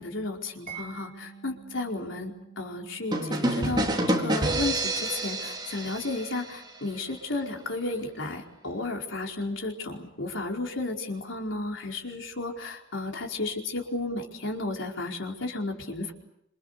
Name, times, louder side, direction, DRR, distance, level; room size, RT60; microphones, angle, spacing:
voice 1, 0.0-16.1, left 2 dB, 70° left, 1 dB, 4.7 m, -33 dB
Mallet percussion, 0.7-7.4, right 7 dB, 45° right, 7.7 m, -50 dB
sound 1, 3.1-6.8, right 1 dB, 20° right, 4.1 m, -28 dB
27.5 x 27.0 x 6.9 m, 0.81 s
head